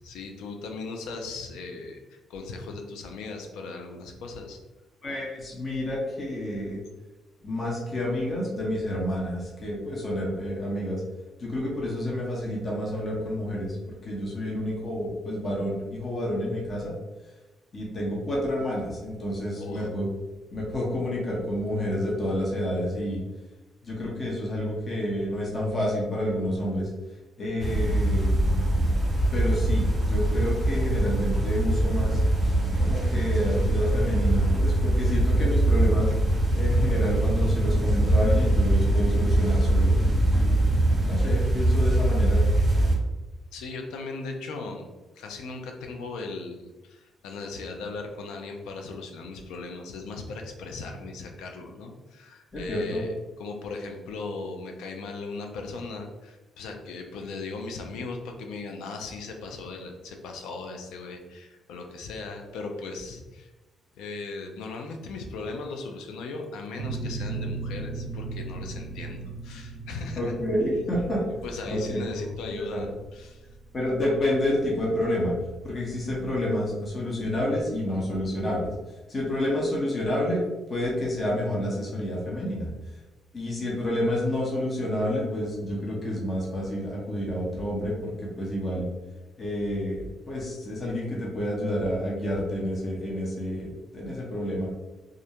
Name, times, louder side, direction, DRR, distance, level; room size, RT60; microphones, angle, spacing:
voice 1, 0.0-4.6 19.6-19.9 43.5-44.9 45.1-53.1 53.4-63.5 63.9-70.3 71.4-73.4, left 3 dB, 90° left, 3 dB, 0.4 m, -38 dB
voice 2, 5.0-6.8 7.4-11.0 11.4-16.9 17.7-20.1 20.5-23.2 23.8-26.9 27.4-28.3 29.3-36.1 36.6-39.9 40.3-40.6 41.0-42.4 52.5-53.1 70.1-71.2 71.7-72.3 72.7-72.8 73.7-75.3 75.6-78.7 79.1-80.4 80.7-82.7 83.3-88.9 89.4-94.7, left 1 dB, 35° left, -4 dB, 0.7 m, -29 dB
sound 1, 27.6-43.0, right 1 dB, 25° right, 0.8 m, -22 dB
sound 2, 66.8-76.2, right 3 dB, 60° right, 0.3 m, -37 dB
2.4 x 2.1 x 2.8 m, 1.1 s
cardioid pair, 90°, 0 cm